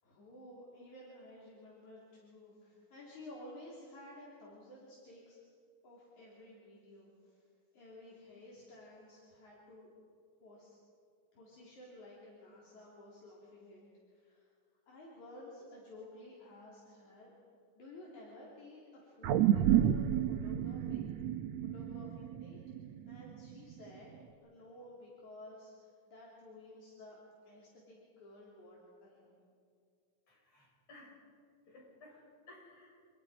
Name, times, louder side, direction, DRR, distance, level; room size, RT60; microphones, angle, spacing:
voice 1, 0.0-5.4 5.8-7.5 7.7-9.9 10.4-10.8 11.3-14.5 14.8-17.3 17.8-20.0 20.3-21.0 21.7-24.1 24.4-27.2 27.4-29.3, left 1 dB, 70° left, -5 dB, 5.0 m, -54 dB
sound 1, 19.2-23.7 24.2-24.3, right 11 dB, 70° right, 1.8 m, -31 dB
voice 2, 30.3-31.2 31.7-33.0, left 2 dB, 55° left, -2 dB, 7.6 m, -57 dB
29.0 x 28.0 x 5.1 m, 2.2 s
omnidirectional pair, 3.5 m